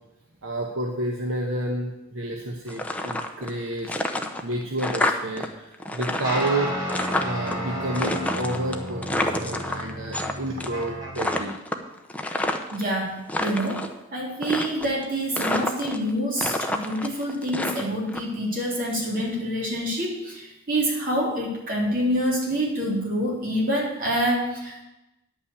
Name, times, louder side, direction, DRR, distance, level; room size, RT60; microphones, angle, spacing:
voice 1, 0.4-3.9 4.4-6.7 7.2-11.5, right 1 dB, 70° right, 1 dB, 1.1 m, -30 dB
sound 1, 2.7-3.6 3.8-5.5 5.7-7.5 7.9-10.3 10.6-10.9 11.1-12.8 13.2-13.9 14.4-15.0 15.4-16.1 16.4-18.2, left 1 dB, 5° left, 0.7 m, -28 dB
sound 2, 6.2-11.4, equal, 20° right, 3.3 m, -32 dB
voice 2, 12.7-24.8, equal, 45° right, -3 dB, 3.5 m, -27 dB
10.0 x 5.7 x 8.2 m, 0.95 s
head